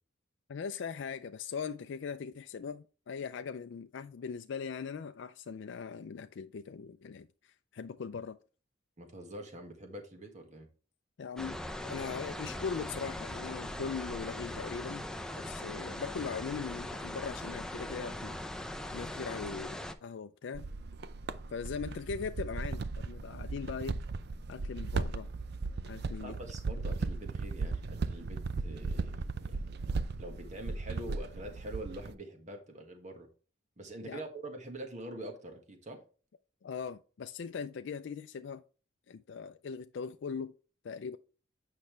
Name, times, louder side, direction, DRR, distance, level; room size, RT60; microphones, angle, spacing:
voice 1, 0.5-8.4 11.2-15.1 15.3-18.4 18.9-20.6 21.5-24.0 24.5-25.3 25.8-26.4 34.1-34.2 36.6-38.6 39.1-40.5 40.8-41.2, left 6 dB, 65° left, 0.4 m, -40 dB
voice 2, 9.0-10.7 26.2-29.6 30.2-33.3 33.8-36.0, right 1 dB, 35° right, 1.6 m, -45 dB
sound 1, 11.4-19.9, left 1 dB, 5° left, 0.5 m, -40 dB
sound 2, 20.5-32.1, right 3 dB, 55° right, 0.5 m, -37 dB
8.5 x 5.6 x 3.2 m
head